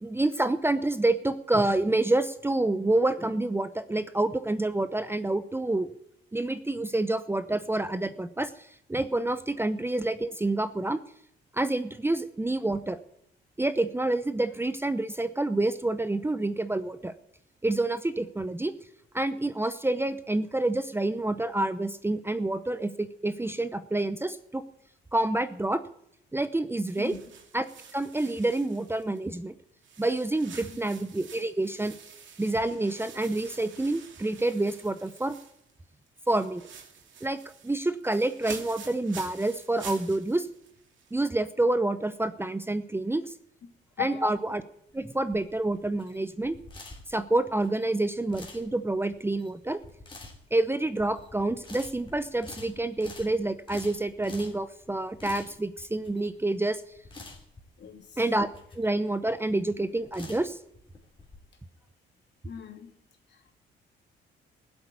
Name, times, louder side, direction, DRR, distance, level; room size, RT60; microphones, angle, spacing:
voice 1, 0.0-5.9 6.3-11.0 11.5-13.0 13.6-17.1 17.6-18.7 19.1-24.6 25.1-25.8 26.3-27.1 27.5-27.6 27.9-29.5 30.0-31.9 32.4-35.4 36.3-36.6 37.2-40.5 41.1-43.3 44.0-44.6 44.9-46.5 47.1-49.8 50.5-56.8 58.2-58.5 58.7-60.6, right 2 dB, 10° right, 11 dB, 0.7 m, -28 dB
sound 1, 26.9-29.4 29.8-35.8 36.1-41.2, right 6 dB, 70° right, 2.6 m, -48 dB
voice 2, 44.0-44.4 57.8-58.2 62.4-63.0 63.3-63.5, left 8 dB, 60° left, 3 dB, 2.9 m, -38 dB
sound 2, 44.9-61.4, left 2 dB, 25° left, 3.2 m, -48 dB
16.0 x 8.0 x 9.5 m, 0.75 s
cardioid pair, 90°, 20 cm